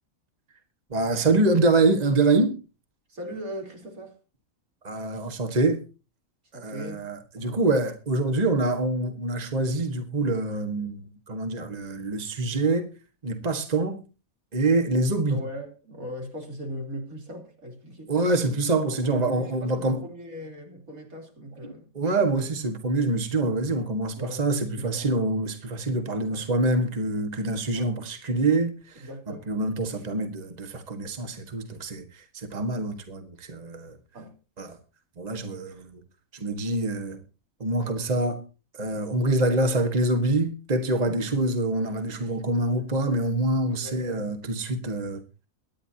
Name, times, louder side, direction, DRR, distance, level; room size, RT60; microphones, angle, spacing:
voice 1, 0.9-2.6 4.8-5.8 6.5-12.9 13.2-14.0 14.5-15.4 18.1-20.0 21.9-34.0 34.6-34.8 35.2-36.0 36.3-37.2 37.6-38.4 38.7-45.2, right 2 dB, 30° right, 1.6 m, -25 dB
voice 2, 3.1-4.2 6.5-7.1 7.4-7.6 15.3-18.5 18.9-21.9 24.2-25.4 26.2-26.4 27.7-27.9 29.0-29.5 34.1-34.3 41.0-41.2 43.7-44.3, equal, 85° right, 4.1 m, -39 dB
23.5 x 10.0 x 2.8 m
omnidirectional pair, 1.4 m